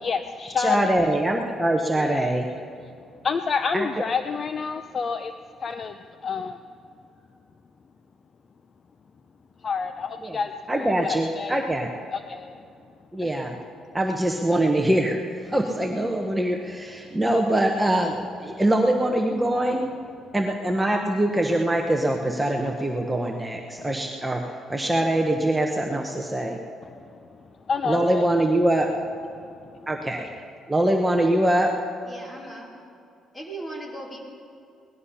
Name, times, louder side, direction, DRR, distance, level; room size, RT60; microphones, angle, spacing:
voice 1, 0.0-0.8 2.0-2.3 3.2-5.3 5.6-6.0 6.2-6.6 9.6-11.6 12.1-12.6 13.2-13.3 27.7-28.3, left 5 dB, 35° left, 9 dB, 0.5 m, -28 dB
voice 2, 0.6-2.5 3.7-3.9 10.2-10.4 10.7-11.9 13.1-13.6 13.9-15.2 15.5-18.1 18.4-19.9 20.3-24.4 24.7-26.6 27.9-28.9 29.9-30.3 30.7-31.7, right 1 dB, 10° right, 1 dB, 1.0 m, -23 dB
voice 3, 32.0-32.7 33.3-34.2, right 1 dB, 20° left, -2 dB, 3.1 m, -38 dB
18.5 x 12.5 x 5.7 m, 2.5 s
cardioid pair, 130°, 0 cm